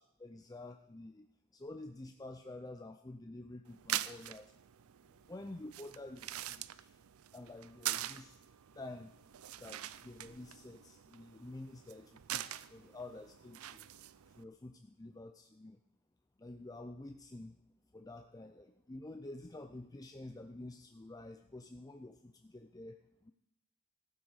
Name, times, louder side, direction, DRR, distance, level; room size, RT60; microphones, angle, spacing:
voice 1, 0.2-1.3 1.5-4.5 5.3-6.9 7.3-8.4 8.8-9.1 9.6-13.9 14.4-15.8 16.4-17.5 17.9-23.0 23.2-23.3, left 2 dB, 15° left, 6 dB, 0.5 m, -49 dB
sound 1, 3.7-14.4, right 13 dB, 85° right, 0.5 m, -44 dB
15.0 x 8.6 x 6.4 m, 0.81 s
head